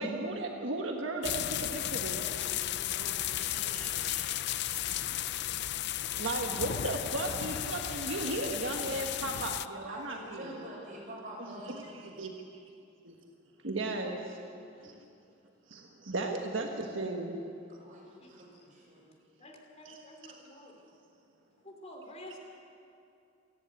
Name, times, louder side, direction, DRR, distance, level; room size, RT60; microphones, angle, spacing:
voice 1, 0.0-2.2 3.4-4.3 6.2-10.5 11.7-12.3 13.0-13.1 13.6-14.2 14.8-14.9 15.7-17.4 19.8-20.0, right 2 dB, 70° right, 2 dB, 1.6 m, -36 dB
sound 1, 1.2-9.7, left 12 dB, 60° left, 0.5 m, -34 dB
voice 2, 2.0-4.1 9.9-12.2 17.7-19.0, right 1 dB, 40° right, -4 dB, 7.1 m, -47 dB
voice 3, 19.4-20.8 21.6-22.4, left 1 dB, 35° left, 2 dB, 3.2 m, -50 dB
28.0 x 10.5 x 9.3 m, 2.5 s
head